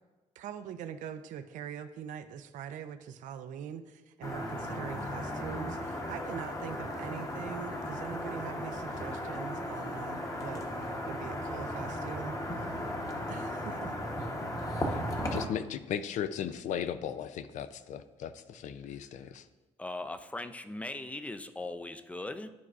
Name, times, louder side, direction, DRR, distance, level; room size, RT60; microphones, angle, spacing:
voice 1, 0.4-12.7 13.3-13.9, right 8 dB, 85° right, 10 dB, 0.5 m, -43 dB
sound 1, 4.2-15.5, left 1 dB, 25° left, 1.0 m, -36 dB
voice 2, 15.3-19.4, left 9 dB, 75° left, 12 dB, 0.4 m, -36 dB
voice 3, 19.8-22.5, left 2 dB, 10° left, 10 dB, 0.4 m, -39 dB
11.0 x 4.6 x 2.4 m, 1.1 s
cardioid pair, 90°, 13 cm